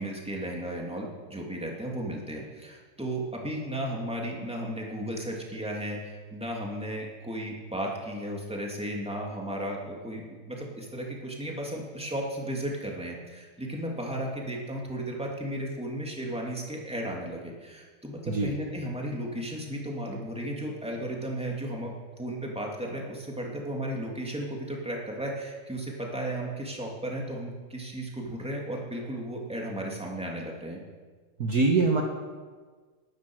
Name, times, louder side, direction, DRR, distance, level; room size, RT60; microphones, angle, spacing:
voice 1, 0.0-21.9 22.2-30.8, right 1 dB, 5° right, -1 dB, 2.7 m, -34 dB
voice 2, 31.4-32.0, right 3 dB, 50° right, 1 dB, 1.7 m, -23 dB
20.0 x 10.5 x 6.4 m, 1.4 s
omnidirectional pair, 2.3 m